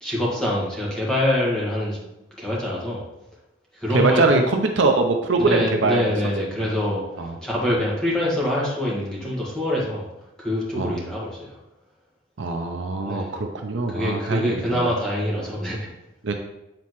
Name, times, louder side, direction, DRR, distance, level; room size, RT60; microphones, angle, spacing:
voice 1, 0.0-2.0 2.4-3.0 3.8-4.4 5.5-7.0 7.4-10.0 10.4-11.5 13.0-13.4 13.9-15.9, left 1 dB, 5° left, -6 dB, 1.6 m, -25 dB
voice 2, 3.9-6.1 6.6-6.7 7.2-7.4 10.7-11.0 12.4-14.8 16.2-16.3, right 3 dB, 60° right, 4 dB, 0.6 m, -22 dB
7.7 x 4.1 x 3.1 m, 0.93 s
head